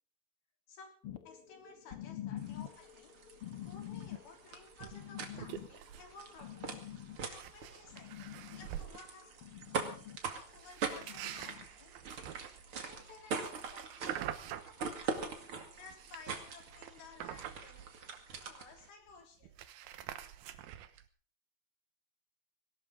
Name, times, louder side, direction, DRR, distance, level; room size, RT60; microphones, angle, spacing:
sound 1, 1.0-8.9 9.2-10.2 10.9-11.7 12.4-12.5, left 11 dB, 65° left, 1.4 m, -47 dB
voice 1, 1.3-3.4 3.7-9.3 9.6-9.7 10.3-12.0 12.8-13.9 14.6-14.9 15.2-15.4 15.7-17.9 18.4-19.6, left 4 dB, 85° left, 3 dB, 5.4 m, -56 dB
sound 2, 2.4-18.9, right 5 dB, 40° right, 2.6 m, -43 dB
sound 3, 4.8-5.0 5.3-6.1 6.4-6.6 7.2-9.0 10.6-15.4 15.7-18.5 18.8-18.9 19.1-21.1, right 11 dB, 90° right, 3.0 m, -46 dB
19.5 x 18.0 x 3.8 m, 0.42 s
omnidirectional pair, 4.3 m